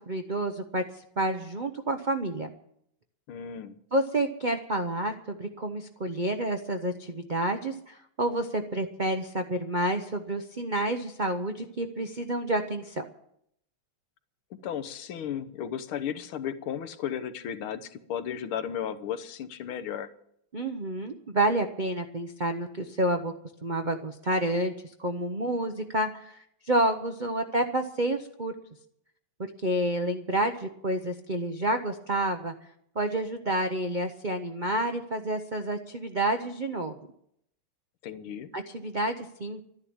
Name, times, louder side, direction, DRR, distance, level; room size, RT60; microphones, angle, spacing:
voice 1, 0.1-0.8 1.2-2.5 3.9-13.0 20.5-23.3 23.6-24.7 25.0-28.5 29.6-32.5 32.9-37.0 38.5-39.6, right 1 dB, 85° right, 6 dB, 0.4 m, -29 dB
voice 2, 3.3-3.8 14.5-20.1 38.0-38.5, left 9 dB, 75° left, 11 dB, 1.8 m, -34 dB
13.0 x 10.5 x 8.7 m, 0.71 s
omnidirectional pair, 2.3 m